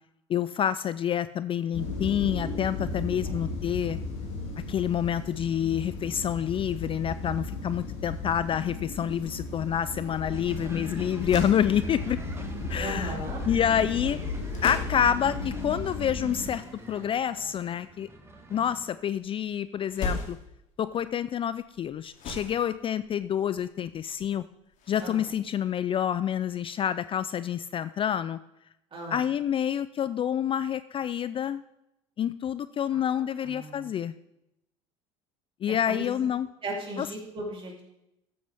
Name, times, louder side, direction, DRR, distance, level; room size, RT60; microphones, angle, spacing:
voice 1, 0.3-4.0 4.7-12.2 12.7-13.1 13.5-14.2 14.6-18.1 18.5-20.4 20.8-24.4 24.9-28.4 29.1-31.6 32.2-34.1 35.6-36.5 37.0-37.1, left 9 dB, 35° left, 14 dB, 0.4 m, -28 dB
sound 1, 1.7-16.5, left 3 dB, 75° left, 2.6 m, -35 dB
sound 2, 9.0-26.5, left 3 dB, 55° left, 2.7 m, -43 dB
sound 3, 10.3-18.9, right 1 dB, 15° right, 1.6 m, -45 dB
voice 2, 12.8-13.4 25.0-25.2 28.9-29.2 32.9-33.9 35.7-36.0 36.6-37.8, right 1 dB, 35° right, -1 dB, 3.4 m, -37 dB
13.5 x 7.7 x 3.5 m, 0.84 s
hypercardioid pair, 70°, 16 cm